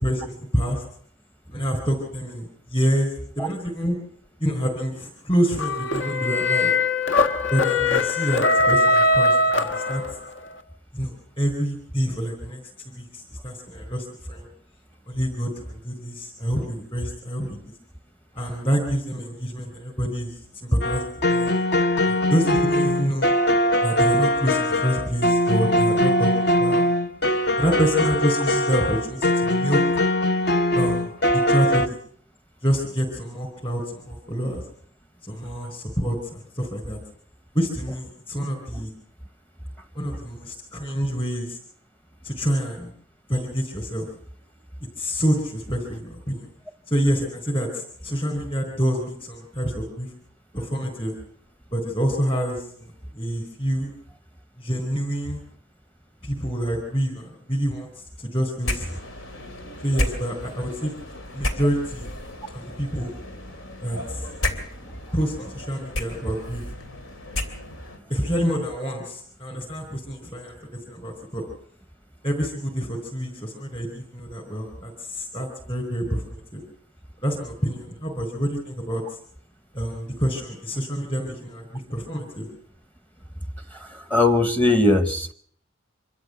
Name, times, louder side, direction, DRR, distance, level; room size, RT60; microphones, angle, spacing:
voice 1, 0.0-0.8 1.5-3.1 3.4-4.0 4.4-6.7 7.5-10.0 10.9-14.5 15.1-17.6 18.4-20.3 20.6-21.6 22.0-23.3 23.8-26.8 27.6-29.8 30.7-31.1 31.5-32.0 32.6-34.6 35.2-37.0 37.5-38.9 39.9-41.6 42.2-42.9 43.3-44.1 45.0-46.5 46.9-50.1 50.5-51.1 51.7-53.9 54.6-55.4 56.2-57.9 58.2-58.9 59.8-60.9 61.3-62.0 62.8-63.1 63.8-64.2 65.1-66.6 68.1-70.5 70.9-71.4 72.2-76.6 77.2-79.0 79.7-82.5, equal, 30° left, 1 dB, 4.3 m, -27 dB
sound 1, 5.6-10.4, left 2 dB, 70° left, 1.6 m, -21 dB
sound 2, 20.8-31.9, left 1 dB, 55° left, 0.9 m, -21 dB
sound 3, 58.6-68.0, left 1 dB, 90° left, 3.0 m, -32 dB
voice 2, 83.7-85.3, left 2 dB, 10° left, 9 dB, 0.9 m, -21 dB
25.5 x 13.5 x 7.8 m, 0.62 s
head